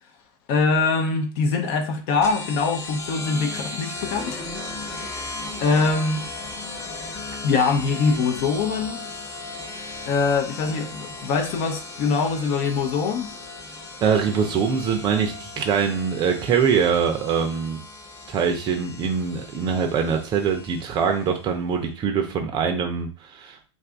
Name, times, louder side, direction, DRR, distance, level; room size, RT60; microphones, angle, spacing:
voice 1, 0.5-4.4 4.9-5.3 5.6-6.3 7.4-9.1 10.1-13.3, left 4 dB, 50° left, 0.6 m, -23 dB
sound 1, 2.2-21.4, left 2 dB, 20° left, 0.8 m, -36 dB
voice 2, 14.0-17.8 18.3-23.6, right 6 dB, 30° right, 0.6 m, -23 dB
2.6 x 2.5 x 3.4 m
hypercardioid pair, 100°, 15 cm